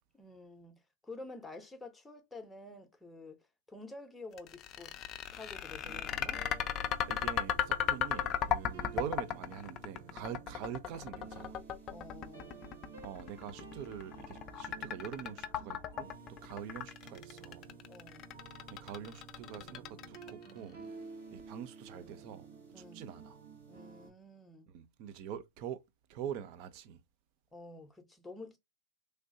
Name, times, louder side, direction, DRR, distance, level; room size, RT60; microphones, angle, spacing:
voice 1, 0.1-3.4 3.7-5.0 5.3-6.5 10.3-10.4 11.9-12.6 17.9-18.3 22.7-23.2 23.6-24.7 27.5-28.6, left 2 dB, 5° left, 0.9 m, -50 dB
sound 1, 4.4-20.5, left 9 dB, 35° left, 0.4 m, -36 dB
sound 2, 5.8-24.1, right 4 dB, 70° right, 1.7 m, -52 dB
voice 2, 7.1-11.6 13.0-17.7 18.7-20.8 21.3-22.5 22.8-23.4 24.7-25.8 26.1-27.0, right 9 dB, 45° right, 0.5 m, -44 dB
3.1 x 2.6 x 2.6 m
hypercardioid pair, 100°, 0 cm